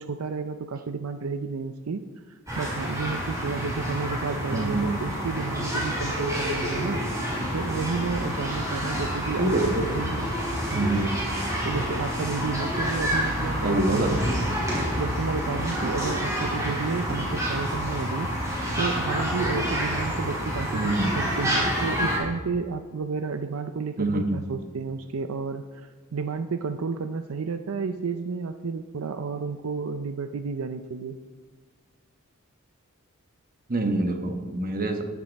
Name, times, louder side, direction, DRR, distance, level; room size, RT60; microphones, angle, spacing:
voice 1, 0.0-10.3 10.7-10.9 11.6-14.2 15.0-18.3 18.8-31.2, right 5 dB, 70° right, 9 dB, 0.5 m, -31 dB
sound 1, 2.5-22.2, equal, 15° right, 3.7 m, -28 dB
voice 2, 4.5-5.0 9.4-10.0 10.6-11.1 13.6-14.3 20.7-21.2 24.0-24.4 33.7-35.0, right 2 dB, 40° right, 5 dB, 1.3 m, -26 dB
13.0 x 9.8 x 4.1 m, 1.5 s
head